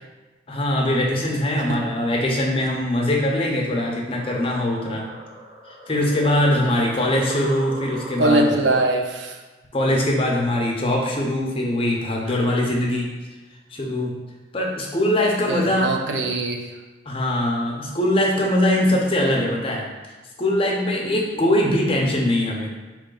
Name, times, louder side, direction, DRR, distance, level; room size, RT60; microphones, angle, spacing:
voice 1, 0.5-5.1 5.9-8.5 9.7-13.1 13.7-14.1 14.5-15.9 17.1-19.9 20.4-22.7, left 1 dB, 30° left, -1 dB, 0.7 m, -22 dB
sound 1, 3.5-8.5, equal, 25° right, 0.7 m, -40 dB
voice 2, 8.2-9.4 12.3-12.4 15.5-16.7 21.3-21.4, right 2 dB, 85° right, 3 dB, 0.6 m, -22 dB
4.5 x 3.1 x 3.8 m, 1.2 s
head